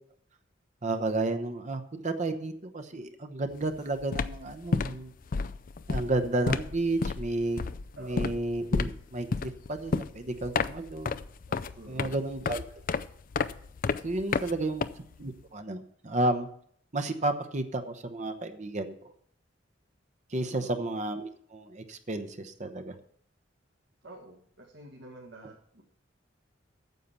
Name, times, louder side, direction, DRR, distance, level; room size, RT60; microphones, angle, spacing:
voice 1, 0.8-5.1 5.9-7.6 8.0-11.2 11.5-12.6 14.0-14.9 15.2-16.5 16.9-18.9 20.3-22.9, right 2 dB, 40° right, 7 dB, 0.9 m, -32 dB
sound 1, 3.5-3.7 4.0-15.4, left 4 dB, 45° left, 0.4 m, -32 dB
voice 2, 8.0-8.3 11.7-12.2 14.3-14.8 20.5-20.8 24.0-25.8, right 1 dB, 80° right, -2 dB, 2.0 m, -49 dB
9.3 x 7.4 x 6.9 m, 0.63 s
head